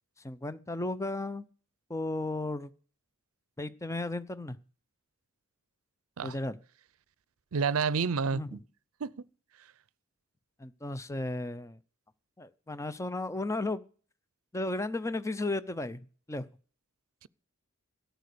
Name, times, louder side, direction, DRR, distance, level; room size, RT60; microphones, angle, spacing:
voice 1, 0.2-1.4 1.9-2.7 3.6-4.6 6.2-6.6 8.3-8.5 10.6-11.8 12.4-13.8 14.5-16.0 16.3-16.4, left 2 dB, 15° left, 0.6 m, -34 dB
voice 2, 7.5-8.6 9.0-9.1, right 5 dB, 70° right, 0.5 m, -29 dB
13.5 x 9.2 x 6.7 m
head